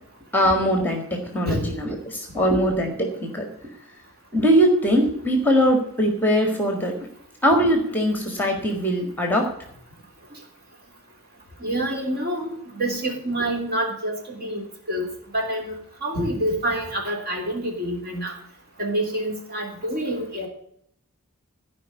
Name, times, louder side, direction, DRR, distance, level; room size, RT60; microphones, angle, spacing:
voice 1, 0.3-3.5 4.3-6.9 7.4-9.4, equal, 10° left, 3 dB, 1.7 m, -21 dB
voice 2, 11.6-12.5 12.8-15.0 15.3-15.7 16.0-18.3 18.8-20.5, right 1 dB, 45° right, 1 dB, 3.2 m, -27 dB
14.0 x 5.3 x 9.4 m, 0.69 s
head